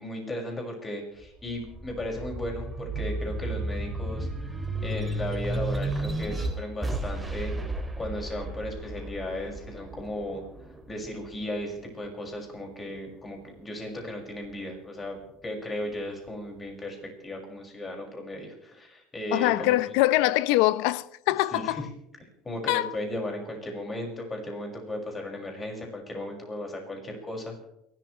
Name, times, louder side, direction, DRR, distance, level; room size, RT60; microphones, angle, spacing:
voice 1, 0.0-4.6 4.8-7.5 7.9-10.4 10.9-17.0 17.2-19.8 21.5-21.9 22.4-27.6, left 1 dB, 20° left, 6.0 m, -36 dB
sound 1, 1.2-12.0 12.5-13.7, right 2 dB, 10° right, 2.6 m, -33 dB
voice 2, 19.3-21.8 22.7-22.9, left 17 dB, 75° left, 0.7 m, -23 dB
29.0 x 13.0 x 3.3 m
supercardioid pair, 105°, 0 cm